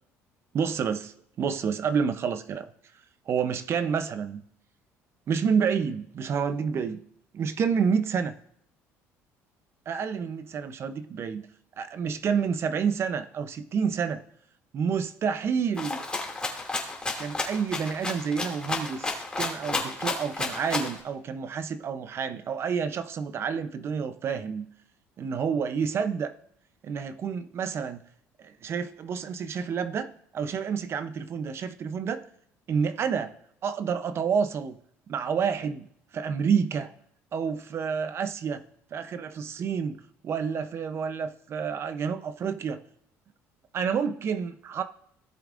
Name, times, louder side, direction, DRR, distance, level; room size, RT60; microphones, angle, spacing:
voice 1, 0.5-1.1 1.4-2.7 3.3-4.4 5.3-7.0 7.3-8.4 9.9-11.4 11.8-14.2 14.7-16.0 17.2-24.7 25.2-26.3 26.8-28.0 28.4-32.2 32.7-33.3 33.6-34.8 35.1-35.9 36.1-36.9 37.3-38.6 38.9-42.8 43.7-44.8, right 6 dB, 45° right, 11 dB, 0.6 m, -29 dB
Rattle (instrument), 15.8-21.0, left 3 dB, 15° left, 2.4 m, -31 dB
17.0 x 7.2 x 2.5 m, 0.69 s
cardioid pair, 105°, 6 cm